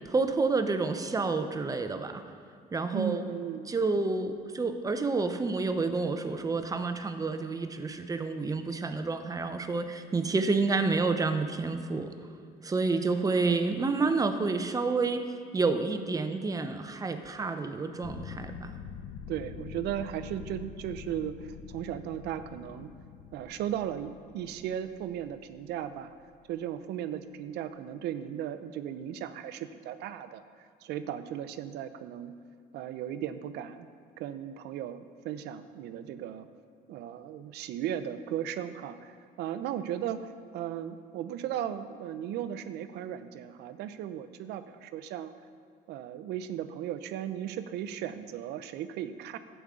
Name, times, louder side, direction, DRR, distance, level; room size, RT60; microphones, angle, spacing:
voice 1, 0.1-2.2 2.7-3.2 3.7-12.1 12.6-18.7, right 3 dB, 20° right, 8 dB, 0.7 m, -29 dB
voice 2, 2.9-3.7 19.3-22.9 23.3-26.1 26.5-30.4 30.8-32.4 32.7-33.9 34.2-36.5 36.9-45.3 45.9-49.4, right 10 dB, 80° right, 12 dB, 0.6 m, -36 dB
sound 1, 18.0-26.4, left 8 dB, 60° left, 0.6 m, -46 dB
12.0 x 8.2 x 3.7 m, 2.2 s
cardioid pair, 110°, 17 cm